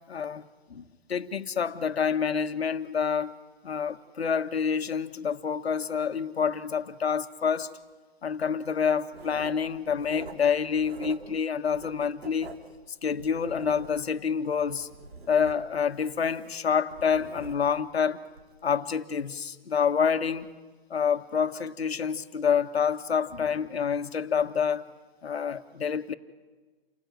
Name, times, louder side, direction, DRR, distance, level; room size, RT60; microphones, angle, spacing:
voice 1, 0.1-3.3 3.6-7.7 8.2-12.5 13.0-14.9 15.3-18.2 18.6-20.5 20.9-24.8 25.2-26.1, left 7 dB, 90° left, 1.5 m, -27 dB
Writing, 9.1-11.4 11.7-14.2 14.6-17.9 18.3-18.5, right 3 dB, 75° right, 3.3 m, -46 dB
29.0 x 19.0 x 9.3 m
hypercardioid pair, 155°, 30 cm